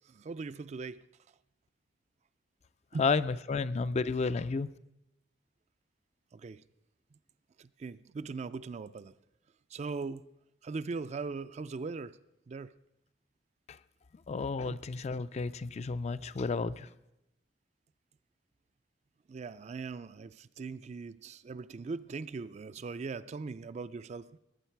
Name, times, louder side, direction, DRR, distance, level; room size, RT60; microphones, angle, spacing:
voice 1, 0.1-1.0 2.9-3.1 6.3-6.6 7.6-9.1 9.7-10.2 10.6-12.2 12.5-12.7 14.6-14.8 19.3-24.3, right 4 dB, 40° right, 0.3 m, -40 dB
voice 2, 3.0-4.7 13.7-13.8 14.3-16.9, left 4 dB, 40° left, 0.4 m, -31 dB
18.5 x 9.0 x 4.6 m
head